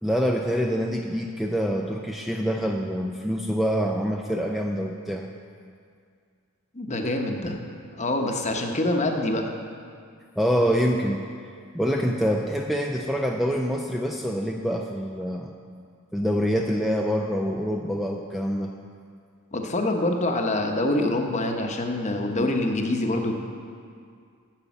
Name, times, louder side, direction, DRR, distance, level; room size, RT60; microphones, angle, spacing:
voice 1, 0.0-5.3 10.4-11.2 11.7-15.5 16.1-18.7, equal, ahead, 1 dB, 0.4 m, -25 dB
voice 2, 6.7-7.6 7.9-9.5 19.5-23.3, left 1 dB, 35° left, 3 dB, 0.9 m, -25 dB
9.3 x 6.7 x 7.1 m, 2.2 s
head